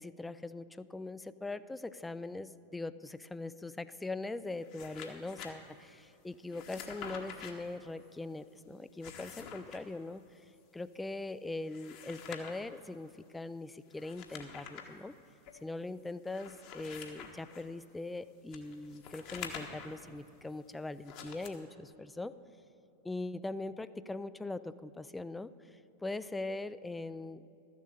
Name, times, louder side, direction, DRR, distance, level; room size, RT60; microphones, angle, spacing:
voice 1, 0.0-10.4 10.7-15.1 15.6-22.4 23.0-27.5, left 2 dB, 10° left, 15 dB, 0.3 m, -41 dB
sound 1, 4.5-5.5 6.5-7.5 8.8-9.8 11.6-12.7 13.9-14.9 15.5-15.6 16.2-17.6 18.5-20.0 21.0-21.5, left 7 dB, 45° left, 1.3 m, -47 dB
13.5 x 7.4 x 7.6 m, 2.8 s
figure-of-eight pair, 90°, 0 cm